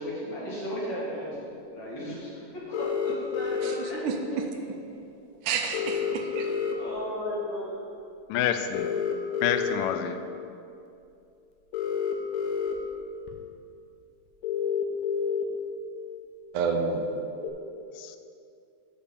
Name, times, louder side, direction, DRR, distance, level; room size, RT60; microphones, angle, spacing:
voice 1, 0.0-4.1 5.9-6.0 6.7-7.9, equal, 40° left, -7 dB, 2.1 m, -35 dB
sound 1, 2.7-3.7 5.7-6.7 8.7-9.7 11.7-12.7 13.3-13.4 14.4-15.4 17.4-17.5, left 7 dB, 75° left, 1.8 m, -29 dB
voice 2, 3.6-4.1 5.4-6.5 16.5-17.1, right 5 dB, 80° right, 4 dB, 2.1 m, -29 dB
voice 3, 8.3-8.9 9.4-10.2 18.0-18.2, left 9 dB, 90° left, 9 dB, 2.2 m, -28 dB
6.8 x 5.2 x 6.9 m, 2.6 s
omnidirectional pair, 3.7 m